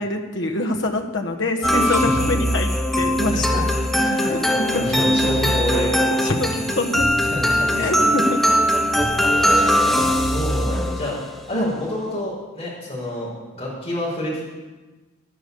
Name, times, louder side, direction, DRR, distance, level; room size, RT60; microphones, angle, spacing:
voice 1, 0.0-2.7 2.9-3.4 4.3-4.4 6.2-7.1 7.8-8.4 11.5-11.7, left 2 dB, 65° left, 2 dB, 1.4 m, -24 dB
sound 1, 1.6-11.3, equal, ahead, 0.9 m, -20 dB
voice 2, 1.8-2.2 3.5-3.6 3.9-4.4 4.8-5.9 7.2-8.1 9.3-11.2 11.5-14.4, left 1 dB, 30° left, -5 dB, 5.5 m, -28 dB
11.5 x 10.0 x 6.9 m, 1.2 s
head